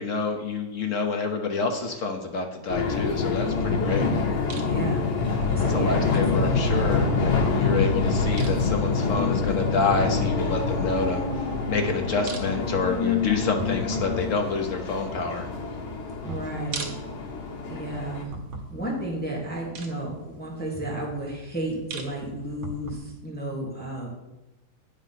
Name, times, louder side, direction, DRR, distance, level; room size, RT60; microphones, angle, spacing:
voice 1, 0.0-4.1 5.7-15.5, left 4 dB, 55° left, 4 dB, 0.9 m, -28 dB
sound 1, 2.7-18.2, left 4 dB, 85° left, 2.2 m, -26 dB
sound 2, 3.4-23.0, right 3 dB, 90° right, 2.0 m, -42 dB
voice 2, 4.5-6.1 16.2-16.9 17.6-18.3 18.7-24.1, right 1 dB, 5° left, -3 dB, 1.7 m, -32 dB
9.4 x 5.1 x 5.7 m, 1.0 s
omnidirectional pair, 2.1 m